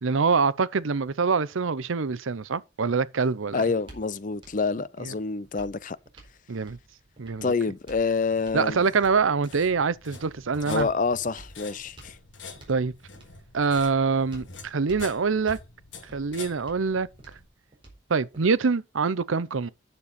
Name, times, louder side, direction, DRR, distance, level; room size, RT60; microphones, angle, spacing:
voice 1, 0.0-3.6 5.0-5.1 6.5-6.8 7.2-7.5 8.5-10.9 12.7-12.9 13.5-15.6 16.1-17.1 18.1-19.7, right 5 dB, 90° right, 0.7 m, -25 dB
sound 1, 2.7-18.8, right 1 dB, 25° right, 4.1 m, -52 dB
voice 2, 3.5-6.0 7.4-8.8 10.7-12.2, left 4 dB, 40° left, 0.5 m, -27 dB
sound 2, 8.2-17.5, left 4 dB, 70° left, 1.8 m, -46 dB
9.8 x 6.8 x 4.2 m
head